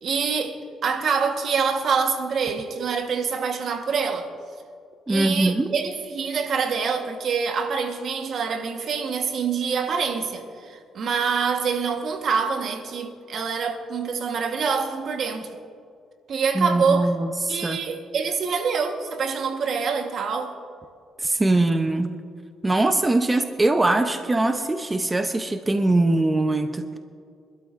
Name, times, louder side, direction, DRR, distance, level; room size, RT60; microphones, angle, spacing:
voice 1, 0.0-4.3 5.1-15.5 16.3-17.1 17.5-20.5, right 5 dB, 60° right, 1.4 m, -25 dB
voice 2, 5.1-5.7 16.5-17.8 21.2-22.2 22.6-27.0, right 2 dB, 15° right, 0.8 m, -22 dB
25.5 x 12.5 x 2.6 m
cardioid pair, 90°, 0 cm